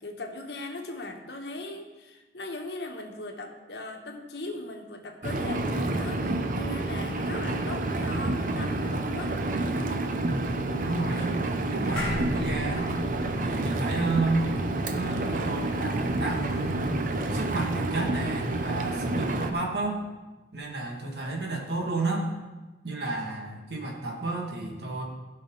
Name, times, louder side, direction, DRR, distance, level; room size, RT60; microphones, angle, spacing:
voice 1, 0.0-9.3, left 2 dB, 75° left, 3 dB, 1.2 m, -39 dB
Engine, 5.2-19.5, right 2 dB, 45° right, 0.7 m, -29 dB
voice 2, 10.8-11.4 11.7-12.9 13.4-14.5 14.9-16.9 17.3-20.0 20.5-22.3 22.8-25.0, right 3 dB, 75° right, -1 dB, 1.8 m, -31 dB
sound 1, 12.0-16.6, left 1 dB, 5° left, 3.2 m, -38 dB
15.5 x 5.5 x 3.9 m, 1.2 s
head